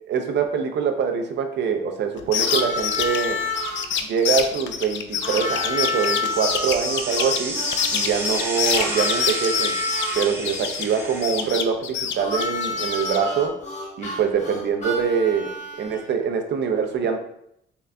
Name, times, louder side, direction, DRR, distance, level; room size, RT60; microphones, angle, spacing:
voice 1, 0.1-3.4 4.1-7.6 7.9-9.8 10.1-13.6 14.0-15.5 15.8-17.2, right 6 dB, 60° right, 5 dB, 0.6 m, -24 dB
sound 1, 2.2-11.0 11.2-13.2, left 8 dB, 70° left, 0.4 m, -26 dB
Harmonica, 2.4-3.8 5.2-10.2 12.2-16.1, left 2 dB, 35° left, 1.1 m, -29 dB
sound 2, 6.2-11.5, right 1 dB, 10° right, 0.9 m, -31 dB
3.8 x 3.4 x 2.2 m, 0.74 s
cardioid pair, 90°, 20 cm